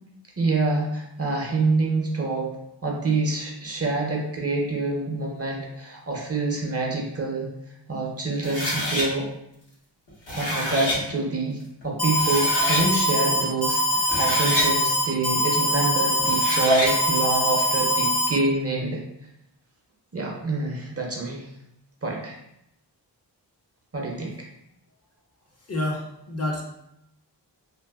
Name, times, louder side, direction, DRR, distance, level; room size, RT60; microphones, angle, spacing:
voice 1, 0.4-2.6 2.8-7.5 7.9-9.3 10.3-19.0 20.1-21.5 22.0-22.4 23.9-24.5, right 3 dB, 35° right, -1 dB, 0.5 m, -26 dB
sound 1, 8.4-9.1 10.1-11.0 11.8-11.9 12.2-12.9 13.9-14.7 16.2-16.9, equal, 80° left, 1.1 m, -26 dB
Alarm, 12.0-18.3, equal, 55° left, 1.1 m, -23 dB
voice 2, 25.7-26.6, left 1 dB, 35° left, -1 dB, 0.6 m, -28 dB
2.6 x 2.5 x 2.3 m, 0.81 s
cardioid pair, 55°, 43 cm